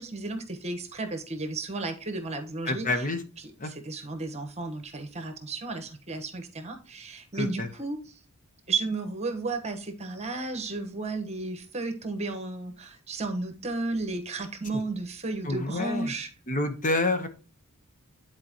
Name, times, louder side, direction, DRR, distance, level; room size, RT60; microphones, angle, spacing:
voice 1, 0.0-3.0 3.6-8.2 8.7-16.3, right 3 dB, 30° right, 6 dB, 1.2 m, -33 dB
voice 2, 2.6-3.2 3.6-3.7 7.3-7.7 15.4-16.1 16.5-17.3, left 2 dB, 40° left, 7 dB, 0.9 m, -28 dB
10.5 x 4.5 x 2.9 m, 0.36 s
head